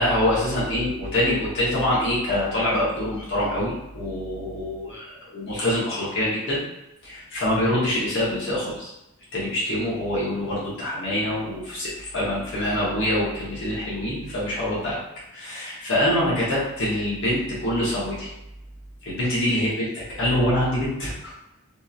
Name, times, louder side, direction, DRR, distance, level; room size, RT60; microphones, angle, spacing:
voice 1, 0.0-5.1 5.3-6.6 7.0-8.9 9.3-15.0 15.3-18.3 19.0-21.3, left 1 dB, 55° left, -7 dB, 1.0 m, -25 dB
2.9 x 2.7 x 2.4 m, 0.91 s
head